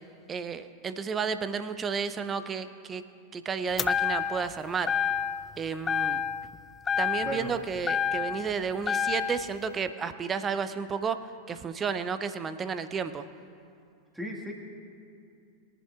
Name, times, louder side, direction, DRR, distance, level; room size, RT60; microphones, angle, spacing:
voice 1, 0.3-3.0 3.3-4.9 5.6-6.2 7.0-11.2 11.5-13.2, right 6 dB, 20° right, 11 dB, 0.6 m, -32 dB
sound 1, 3.8-4.5 4.9-5.5 5.9-6.6 6.9-8.5 8.9-9.5, left 8 dB, 20° left, 0.4 m, -28 dB
voice 2, 7.2-7.5 14.1-14.5, equal, ahead, -1 dB, 1.6 m, -35 dB
21.5 x 11.0 x 2.4 m, 2.5 s
figure-of-eight pair, 90°, 0 cm